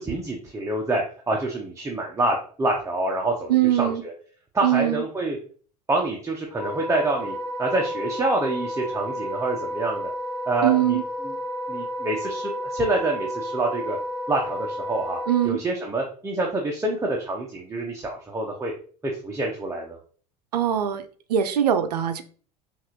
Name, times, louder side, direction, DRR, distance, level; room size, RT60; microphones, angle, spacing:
voice 1, 0.0-4.1 4.5-5.4 5.9-10.1 10.5-11.3 11.7-14.0 14.3-18.7 19.0-20.0, right 2 dB, 15° right, -1 dB, 0.8 m, -27 dB
voice 2, 3.5-4.0 4.6-5.0 10.6-11.0 15.3-15.6 20.5-21.0 21.3-22.2, right 11 dB, 75° right, 10 dB, 0.6 m, -21 dB
Wind instrument woodwind instrument, 6.5-15.5, equal, 20° left, 1.7 m, -31 dB
5.7 x 2.6 x 3.0 m, 0.43 s
figure-of-eight pair, 75°, 21 cm